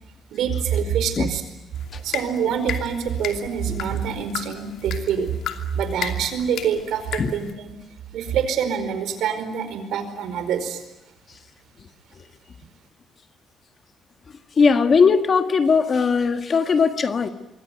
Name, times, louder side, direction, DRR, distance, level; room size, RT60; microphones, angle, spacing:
voice 1, 0.3-1.4 2.0-5.3 5.7-7.4 8.1-10.8, right 7 dB, 80° right, 4.8 m, -25 dB
sound 1, 1.7-7.5, left 9 dB, 80° left, 2.8 m, -35 dB
voice 2, 14.5-17.3, left 5 dB, 35° left, 1.6 m, -19 dB
27.5 x 23.5 x 9.2 m
cardioid pair, 150°, 0 cm